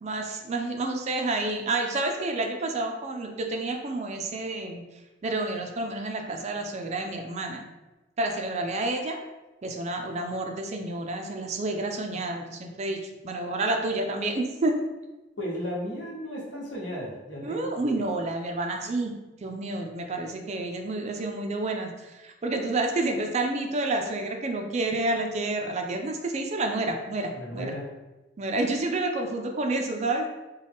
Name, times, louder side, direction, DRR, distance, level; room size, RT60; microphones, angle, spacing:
voice 1, 0.0-4.8 5.2-7.6 8.2-9.2 9.6-14.7 17.4-19.1 19.4-27.7 28.4-30.3, right 2 dB, 35° right, 3 dB, 0.4 m, -29 dB
voice 2, 15.4-17.8 27.3-27.9, equal, 65° left, -4 dB, 1.1 m, -34 dB
3.8 x 2.2 x 3.4 m, 1.1 s
head